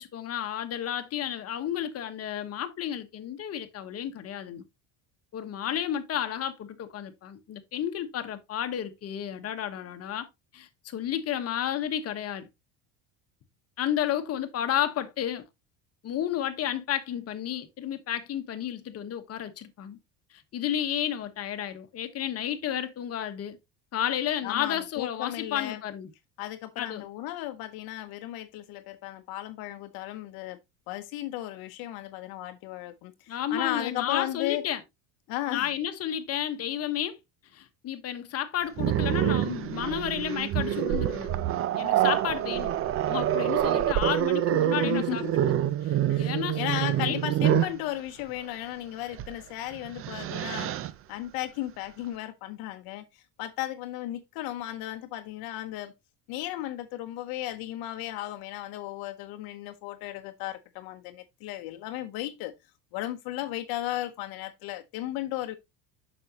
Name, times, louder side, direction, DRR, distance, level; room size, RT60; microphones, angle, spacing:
voice 1, 0.0-4.6 5.3-10.3 10.5-12.5 13.8-15.4 16.0-20.0 20.3-23.6 23.9-26.1 26.8-27.1 33.3-34.8 35.5-37.2 37.5-41.3 41.7-42.7 43.1-45.2 45.8-46.6 46.9-47.2, left 10 dB, 40° left, 1.2 m, -32 dB
voice 2, 24.4-25.8 26.4-30.6 30.9-34.7 35.3-35.7 44.7-45.7 46.1-50.7 51.1-55.9 56.3-62.5 62.9-65.6, left 14 dB, 65° left, 0.9 m, -35 dB
Growling, 38.8-47.8 49.1-49.3 49.7-50.9, right 12 dB, 35° right, 0.5 m, -26 dB
7.5 x 6.1 x 2.9 m
cardioid pair, 135°, 40 cm